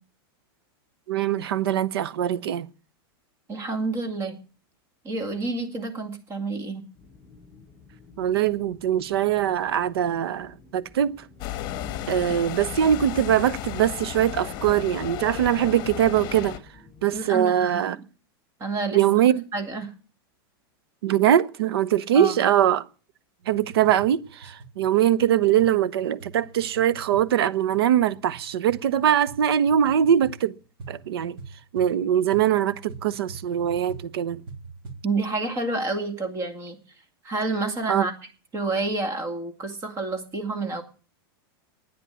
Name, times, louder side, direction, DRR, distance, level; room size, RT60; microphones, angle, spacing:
voice 1, 1.1-2.7 8.2-11.1 12.1-16.6 17.0-18.0 18.9-19.4 21.0-22.8 23.5-30.6 30.9-31.4 31.7-34.4 37.9-38.1, right 10 dB, 85° right, 0.9 m, -22 dB
voice 2, 3.5-4.4 5.0-6.8 17.1-18.0 18.6-19.0 19.5-19.9 22.1-22.4 35.0-36.8 37.2-38.1 38.5-40.8, right 3 dB, 20° right, 2.3 m, -29 dB
sound 1, 6.9-17.2, left 3 dB, 15° left, 7.5 m, -52 dB
sound 2, 11.4-16.6, left 11 dB, 35° left, 1.3 m, -34 dB
sound 3, 23.4-35.1, right 4 dB, 70° right, 3.1 m, -44 dB
11.0 x 9.7 x 8.4 m
supercardioid pair, 155°, 12 cm